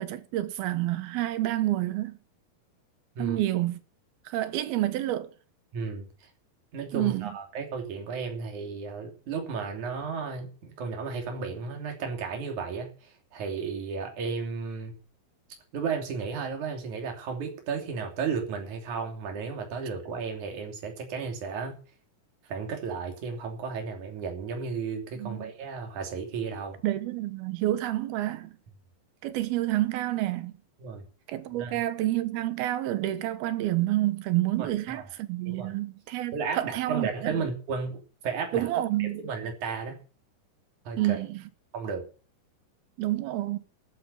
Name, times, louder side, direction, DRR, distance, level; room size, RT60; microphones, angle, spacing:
voice 1, 0.0-2.2 3.2-3.8 4.3-5.3 6.9-7.3 25.2-25.5 26.8-28.5 29.2-30.5 31.3-37.4 38.5-39.3 41.0-41.4 43.0-43.6, right 15 dB, 80° right, 3.0 m, -29 dB
voice 2, 5.7-6.1 6.7-12.9 13.3-14.9 15.7-21.8 22.5-26.8 30.8-31.0 31.6-31.8 34.6-35.0 35.5-35.7 36.3-38.7 39.0-40.0 40.9-41.2 41.7-42.0, right 5 dB, 55° right, 4.3 m, -33 dB
12.0 x 11.5 x 6.9 m
omnidirectional pair, 4.3 m